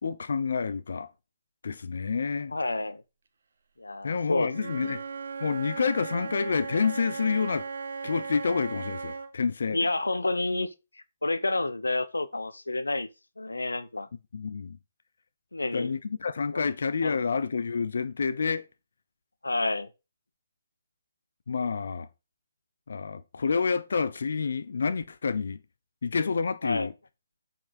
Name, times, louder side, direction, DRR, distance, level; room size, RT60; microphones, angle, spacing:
voice 1, 0.0-1.1 1.6-2.5 4.0-5.0 5.4-7.7 8.0-9.8 14.3-14.8 15.7-18.7 21.5-22.1 22.9-25.6 26.0-26.9, left 5 dB, 65° left, 0.9 m, -28 dB
voice 2, 2.5-3.0 3.8-5.0 9.7-13.1 13.4-14.1 15.5-15.9 16.5-16.7 17.0-17.2 19.4-19.9 26.6-26.9, left 2 dB, 90° left, 1.1 m, -30 dB
Wind instrument woodwind instrument, 4.5-9.3, right 5 dB, 65° right, 2.0 m, -37 dB
8.7 x 6.0 x 6.3 m
figure-of-eight pair, 140°, 0 cm